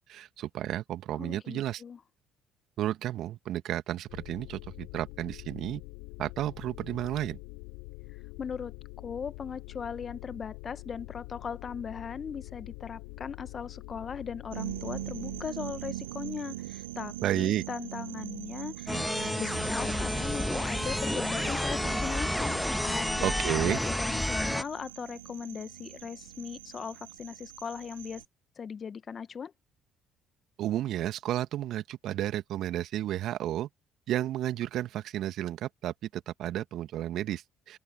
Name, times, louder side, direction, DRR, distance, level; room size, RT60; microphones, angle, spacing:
voice 1, 0.1-1.8 2.8-5.8 6.2-7.4 17.2-17.6 23.2-23.8 30.6-33.7 34.1-37.8, right 13 dB, 60° right, 2.0 m, -32 dB
voice 2, 1.1-2.0 8.4-22.5 22.8-28.2 28.6-29.5, left 6 dB, 40° left, 1.5 m, -39 dB
sound 1, 4.1-15.5, left 29 dB, 70° left, 3.7 m, -45 dB
sound 2, 14.5-28.3, right 15 dB, 80° right, 7.9 m, -42 dB
sound 3, 18.9-24.6, equal, 5° left, 0.5 m, -30 dB
open air
hypercardioid pair, 50°, 0 cm